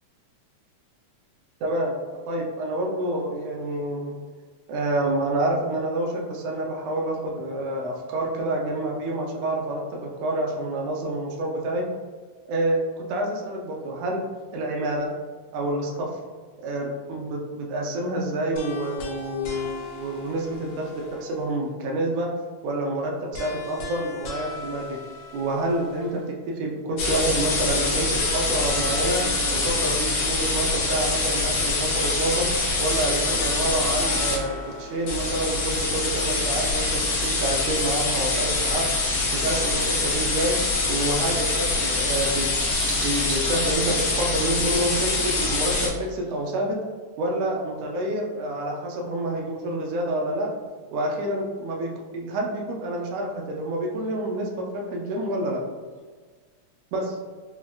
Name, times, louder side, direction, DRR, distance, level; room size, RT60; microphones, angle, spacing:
voice 1, 1.6-4.1 4.7-11.8 12.5-14.2 14.5-15.1 15.5-16.1 16.6-22.3 22.6-25.0 25.3-26.2 26.5-29.2 29.5-38.8 39.4-40.5 40.9-46.8 47.2-50.5 50.9-55.6 56.9-57.0, right 1 dB, 85° right, -1 dB, 1.3 m, -28 dB
sound 1, 18.6-21.7 23.3-26.3 28.1-31.3 32.9-36.4, left 1 dB, 85° left, 1.2 m, -39 dB
sound 2, 27.0-34.4 35.1-45.9, left 3 dB, 65° left, 1.8 m, -24 dB
sound 3, 40.7-46.5, right 2 dB, 65° right, 1.2 m, -39 dB
5.8 x 2.1 x 2.3 m, 1.5 s
omnidirectional pair, 3.3 m